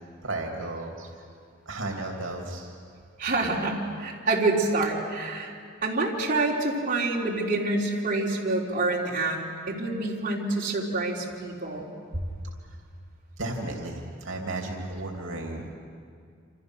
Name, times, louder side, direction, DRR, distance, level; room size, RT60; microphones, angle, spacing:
voice 1, 0.2-1.1 1.7-2.8 12.7-12.8 13.4-15.7, right 2 dB, 70° right, 1 dB, 3.0 m, -34 dB
voice 2, 3.2-5.5 5.8-11.9, right 2 dB, 40° right, -4 dB, 3.5 m, -27 dB
27.5 x 27.0 x 6.4 m, 2.2 s
head